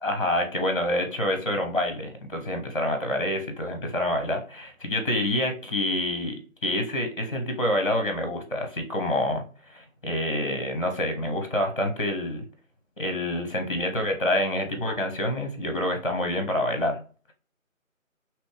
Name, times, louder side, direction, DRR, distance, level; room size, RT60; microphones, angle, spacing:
voice 1, 0.0-12.4 13.0-17.0, left 1 dB, 40° left, 5 dB, 0.8 m, -27 dB
5.2 x 3.0 x 3.2 m, 0.40 s
figure-of-eight pair, 165°, 41 cm